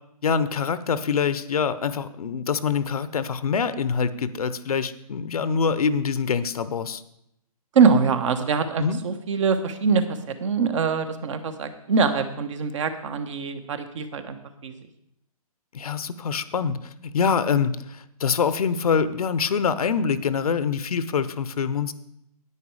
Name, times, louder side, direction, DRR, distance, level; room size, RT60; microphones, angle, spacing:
voice 1, 0.2-7.0 8.8-9.0 15.7-21.9, left 6 dB, 70° left, 15 dB, 0.7 m, -25 dB
voice 2, 7.7-10.0 10.4-14.4 14.6-14.8, right 5 dB, 55° right, 9 dB, 1.3 m, -23 dB
9.9 x 9.3 x 4.8 m, 0.78 s
hypercardioid pair, 135°, 19 cm